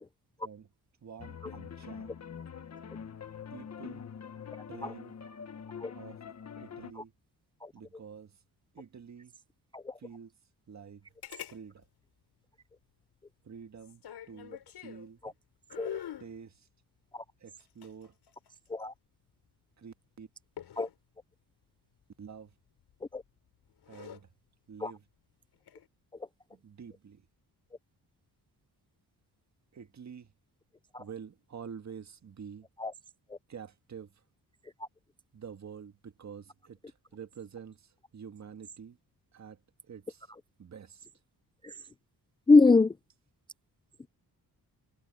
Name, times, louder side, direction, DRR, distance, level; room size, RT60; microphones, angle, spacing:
voice 1, 1.0-2.2 3.5-4.1 4.3-5.1 5.9-6.2 6.6-7.1 7.7-8.4 8.7-9.3 10.0-10.3 10.7-11.1 11.5-11.9 13.4-15.4 16.2-16.7 17.4-18.2 19.8-20.3 22.2-22.6 23.9-24.3 24.7-25.0 26.5-27.3 29.7-30.3 31.0-32.7 33.5-34.2 35.3-39.0 39.3-40.3 40.6-41.1, right 7 dB, 45° right, 1.8 m, -48 dB
sound 1, 1.2-6.9, left 7 dB, 45° left, 1.5 m, -44 dB
sound 2, 11.2-11.6 11.8-11.9 13.8-15.1 15.7-16.3 17.6-18.8 20.6-20.9 22.8-23.2 23.7-24.2 25.5-25.9, left 10 dB, 85° left, 4.9 m, -44 dB
voice 2, 42.5-43.0 44.0-44.1, left 3 dB, 15° left, 0.3 m, -24 dB
wide cardioid pair, 145°, 38 cm